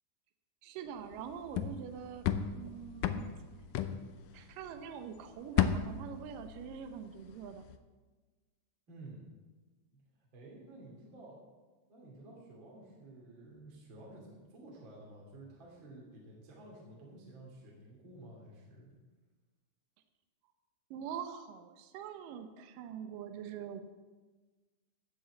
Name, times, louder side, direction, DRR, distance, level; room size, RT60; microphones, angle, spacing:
voice 1, 0.6-2.3 2.5-3.3 4.3-7.7 20.9-23.8, right 8 dB, 70° right, 7 dB, 2.4 m, -44 dB
sound 1, 1.1-4.9 5.2-7.2 7.5-7.8, left 9 dB, 80° left, 1.9 m, -34 dB
voice 2, 8.9-9.2 9.9-11.4 11.9-18.9, right 1 dB, 35° right, -3 dB, 3.0 m, -52 dB
15.0 x 6.2 x 8.0 m, 1.3 s
omnidirectional pair, 4.4 m